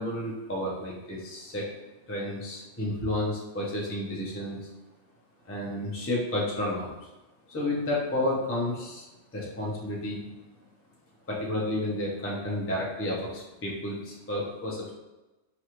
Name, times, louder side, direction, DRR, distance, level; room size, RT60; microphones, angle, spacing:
voice 1, 0.0-1.7 2.1-4.7 5.5-6.9 7.5-9.1 9.3-10.5 11.3-14.9, left 1 dB, 15° left, -4 dB, 0.5 m, -31 dB
4.8 x 2.5 x 2.9 m, 1.1 s
omnidirectional pair, 1.2 m